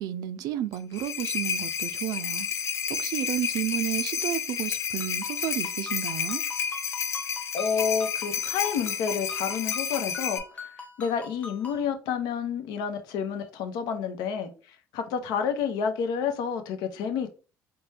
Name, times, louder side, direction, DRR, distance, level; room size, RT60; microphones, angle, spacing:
voice 1, 0.0-2.5 3.0-6.4, right 12 dB, 75° right, 0.4 m, -32 dB
sound 1, 0.7-10.4, left 7 dB, 45° left, 0.6 m, -31 dB
Ringtone, 5.0-11.9, left 3 dB, 20° left, 1.0 m, -43 dB
voice 2, 7.5-10.7 11.0-14.5 14.9-17.3, left 7 dB, 85° left, 0.8 m, -29 dB
4.3 x 2.2 x 3.3 m
cardioid pair, 115°, 7 cm